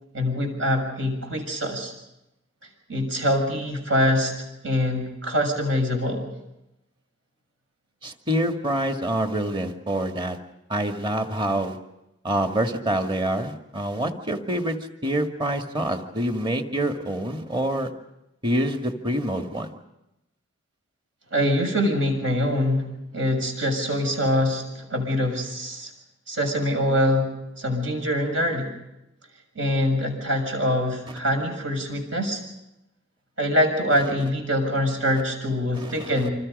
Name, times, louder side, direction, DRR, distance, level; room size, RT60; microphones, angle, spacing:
voice 1, 0.1-1.9 2.9-4.3 4.6-6.3 21.3-22.9 23.1-25.9 26.3-28.7 29.6-32.4 33.4-36.3, equal, 70° right, 3 dB, 7.1 m, -24 dB
voice 2, 8.0-10.4 10.7-11.8 12.2-14.8 15.0-17.9 18.4-19.7 35.7-36.3, right 1 dB, 25° right, 5 dB, 1.9 m, -26 dB
28.0 x 26.5 x 5.4 m, 0.88 s
head